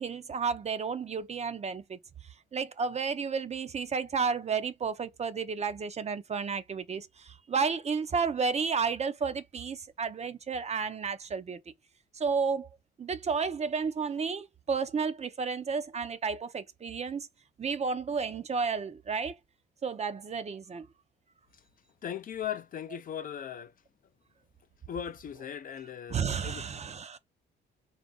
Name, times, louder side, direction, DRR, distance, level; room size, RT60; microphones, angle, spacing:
voice 1, 0.0-2.0 2.5-11.6 12.1-12.7 13.0-17.3 17.6-19.3 19.8-20.9 26.1-27.2, right 5 dB, 35° right, 0.5 m, -32 dB
voice 2, 22.0-23.7 24.9-26.2 26.4-26.7, left 9 dB, 45° left, 0.4 m, -38 dB
4.3 x 2.4 x 3.7 m
cardioid pair, 90°, 20 cm